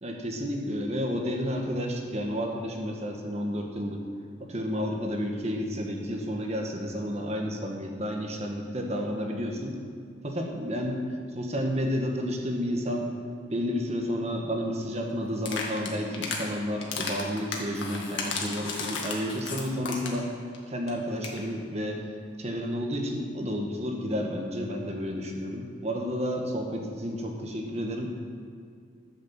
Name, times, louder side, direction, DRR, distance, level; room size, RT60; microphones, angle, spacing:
voice 1, 0.0-4.0 4.4-9.8 10.2-11.0 11.3-13.1 13.5-20.3 20.7-22.1 22.4-28.2, equal, 35° right, 2 dB, 1.4 m, -31 dB
sound 1, 15.4-16.4 16.8-20.3 20.5-20.6 20.9-21.0 21.2-21.4, left 4 dB, 90° left, 1.8 m, -33 dB
12.0 x 6.6 x 7.3 m, 2.2 s
head